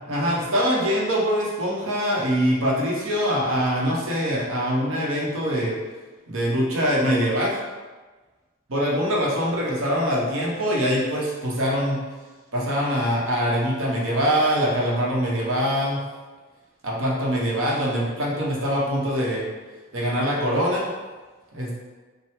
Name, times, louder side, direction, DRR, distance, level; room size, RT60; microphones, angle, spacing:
voice 1, 0.1-5.7 6.3-7.5 8.7-12.0 12.5-16.0 16.8-19.4 19.9-20.9 21.5-21.7, equal, 75° right, -4 dB, 1.0 m, -23 dB
5.5 x 2.2 x 3.6 m, 1.3 s
head